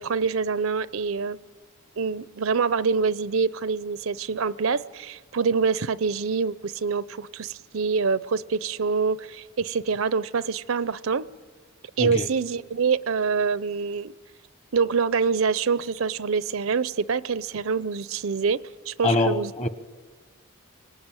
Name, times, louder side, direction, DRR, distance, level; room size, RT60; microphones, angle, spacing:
voice 1, 0.0-1.4 2.0-11.3 12.0-14.1 14.7-19.5, right 5 dB, 75° right, 0.6 m, -25 dB
voice 2, 19.0-19.7, left 2 dB, 30° left, 1.1 m, -24 dB
24.5 x 20.0 x 9.0 m
head